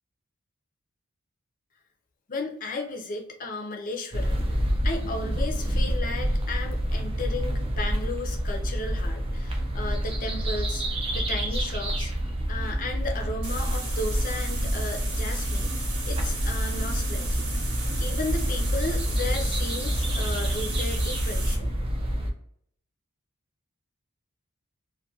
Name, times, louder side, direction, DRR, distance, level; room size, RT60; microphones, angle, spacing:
voice 1, 2.3-4.5 4.8-15.7 16.0-17.4 18.0-21.7, left 2 dB, 40° left, 3 dB, 0.5 m, -35 dB
sound 1, 4.1-22.3, equal, 25° right, 0.4 m, -27 dB
sound 2, 13.4-21.6, right 3 dB, 75° right, 0.9 m, -37 dB
2.3 x 2.2 x 2.6 m, 0.65 s
head